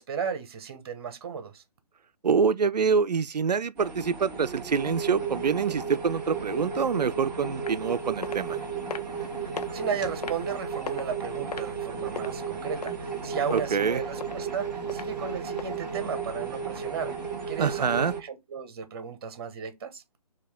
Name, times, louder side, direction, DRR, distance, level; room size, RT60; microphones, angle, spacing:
voice 1, 0.0-1.6 9.7-17.1 17.5-20.0, right 6 dB, 35° right, 1.0 m, -34 dB
voice 2, 2.2-8.6 13.5-14.0 17.6-18.1, right 6 dB, 80° right, 0.5 m, -26 dB
sound 1, 3.8-18.2, right 6 dB, 5° right, 0.3 m, -34 dB
sound 2, 7.7-7.9 8.2-8.4 8.9-9.2 9.6-9.7 10.2-10.5 10.9-11.1 11.5-12.3 12.8-13.2 13.5-13.6 14.2-14.4 14.9-15.1 15.6-15.7 16.2-16.3, left 6 dB, 75° left, 0.5 m, -36 dB
4.6 x 2.9 x 3.5 m
figure-of-eight pair, 150°, 21 cm